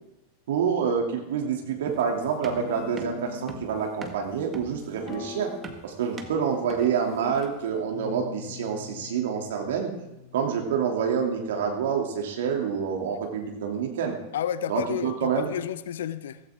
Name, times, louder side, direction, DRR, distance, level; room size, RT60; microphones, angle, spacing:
voice 1, 0.5-5.5 5.8-9.9 10.3-14.2 14.7-15.5, right 7 dB, 55° right, 2.8 m, -27 dB
sound 1, 1.9-7.7, right 5 dB, 20° right, 1.6 m, -43 dB
Guitar, 2.5-3.7 4.9-5.9 6.2-7.3 7.9-11.4, left 8 dB, 45° left, 2.3 m, -42 dB
voice 2, 14.3-16.4, left 9 dB, 60° left, 0.7 m, -30 dB
16.0 x 16.0 x 3.7 m
figure-of-eight pair, 90°, 0 cm